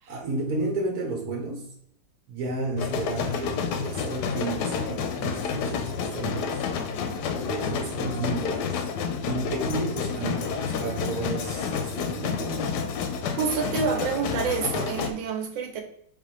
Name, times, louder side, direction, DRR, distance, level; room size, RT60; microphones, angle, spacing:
voice 1, 0.1-1.7 2.3-6.6 7.3-8.9 9.3-12.8, right 2 dB, 60° right, 0 dB, 1.1 m, -32 dB
sound 1, 2.8-15.1, left 6 dB, 70° left, 1.1 m, -29 dB
voice 2, 13.4-15.8, right 6 dB, 85° right, 4 dB, 1.4 m, -28 dB
3.9 x 3.8 x 3.1 m, 0.70 s
omnidirectional pair, 2.1 m